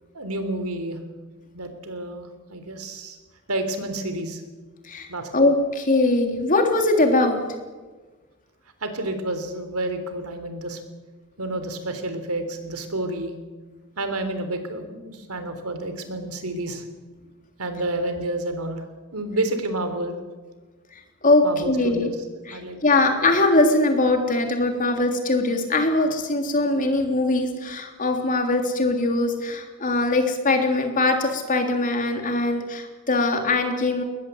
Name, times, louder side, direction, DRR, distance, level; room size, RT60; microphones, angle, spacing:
voice 1, 0.1-1.0 1.5-3.2 3.5-4.4 5.1-5.4 8.8-10.8 11.4-13.3 14.0-16.8 17.6-18.8 19.1-20.2 21.4-22.2 22.5-22.8, right 1 dB, 85° right, 8 dB, 3.6 m, -29 dB
voice 2, 5.3-7.4 21.2-22.1 22.5-34.0, left 2 dB, 40° left, 4 dB, 3.4 m, -21 dB
21.5 x 20.0 x 8.1 m, 1.3 s
head